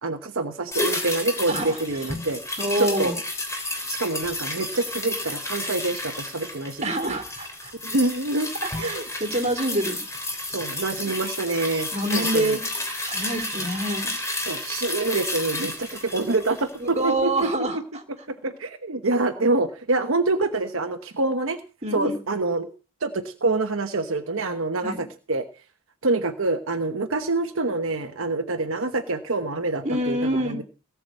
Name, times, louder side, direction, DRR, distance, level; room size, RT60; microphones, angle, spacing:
voice 1, 0.0-2.4 2.8-3.1 3.9-7.2 7.8-8.5 8.8-9.0 10.5-12.6 13.5-13.7 14.4-17.8 18.3-21.6 21.9-22.7 23.0-25.5 26.0-30.6, right 2 dB, 65° right, 6 dB, 1.1 m, -26 dB
sound 1, 0.7-17.2 17.5-17.6, left 2 dB, 15° left, 3.2 m, -31 dB
voice 2, 2.6-3.1 6.8-7.7 8.8-10.0 11.9-12.6 13.0-14.1 16.8-18.0 21.8-22.1 24.8-25.0 29.8-30.6, right 1 dB, 30° right, 4 dB, 2.4 m, -26 dB
17.5 x 5.9 x 8.1 m, 0.36 s
head